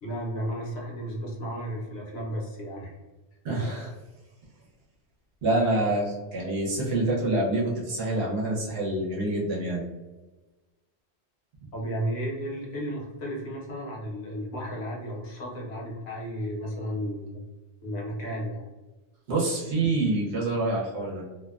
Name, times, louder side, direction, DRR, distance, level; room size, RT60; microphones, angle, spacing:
voice 1, 0.0-3.0 11.7-17.4 17.8-18.7, equal, 70° left, -3 dB, 1.0 m, -33 dB
voice 2, 3.4-3.9 5.4-9.8 19.3-21.2, right 2 dB, 65° right, -4 dB, 1.0 m, -26 dB
2.6 x 2.1 x 2.3 m, 1.2 s
omnidirectional pair, 1.1 m